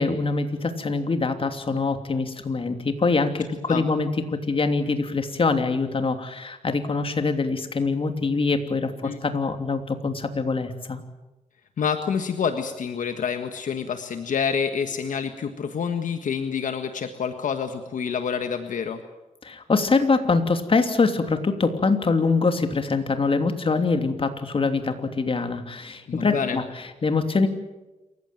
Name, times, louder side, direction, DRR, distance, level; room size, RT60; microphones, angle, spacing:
voice 1, 0.0-11.0 19.4-27.5, left 4 dB, 40° left, 7 dB, 3.0 m, -24 dB
voice 2, 11.8-19.0 26.1-26.6, left 6 dB, 70° left, 8 dB, 1.6 m, -27 dB
27.5 x 15.5 x 9.1 m, 1.1 s
cardioid pair, 75°, 14 cm